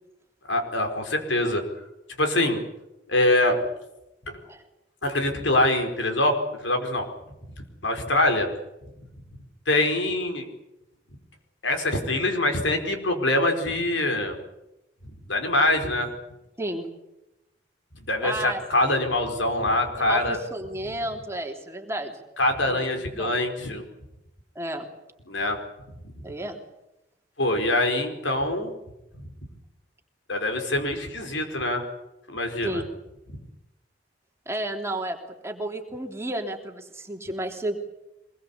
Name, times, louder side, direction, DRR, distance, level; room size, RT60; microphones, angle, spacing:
voice 1, 0.5-1.6 2.2-2.6 3.1-3.6 4.3-4.4 5.0-7.1 7.8-8.5 9.7-10.5 11.6-14.4 15.3-16.1 18.1-20.4 22.4-23.8 25.3-25.6 27.4-28.7 30.3-31.8 32.3-32.8 33.3-33.4, left 1 dB, 85° left, 5 dB, 4.9 m, -24 dB
voice 2, 16.6-16.9 18.2-18.6 19.9-22.2 22.7-22.9 23.1-23.4 24.6-24.9 26.2-26.6 32.6-32.8 34.5-37.8, right 1 dB, 15° right, 2 dB, 3.3 m, -32 dB
23.5 x 22.0 x 8.5 m, 0.92 s
head